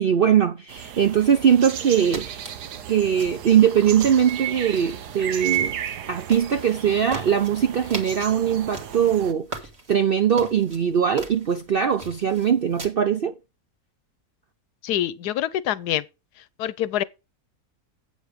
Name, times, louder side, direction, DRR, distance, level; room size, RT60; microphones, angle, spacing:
voice 1, 0.0-2.4 2.9-5.8 6.1-9.4 9.9-13.4, right 8 dB, 65° right, 0.5 m, -21 dB
sound 1, 0.7-9.3, right 10 dB, 90° right, 1.5 m, -34 dB
sound 2, 1.9-12.9, right 2 dB, 40° right, 2.0 m, -42 dB
voice 2, 14.8-16.0 16.6-17.0, left 12 dB, 80° left, 1.2 m, -25 dB
8.3 x 7.4 x 5.1 m
omnidirectional pair, 1.7 m